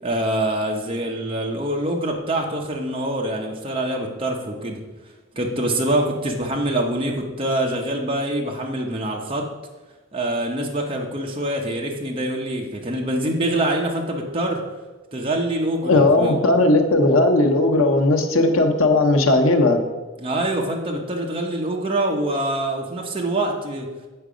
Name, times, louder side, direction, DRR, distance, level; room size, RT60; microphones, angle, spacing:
voice 1, 0.0-4.8 5.3-9.5 10.1-14.6 15.1-16.4 20.2-23.9, right 1 dB, 25° right, 0 dB, 0.8 m, -25 dB
voice 2, 15.8-19.8, left 2 dB, 85° left, 5 dB, 0.9 m, -17 dB
8.7 x 4.6 x 5.0 m, 1.2 s
head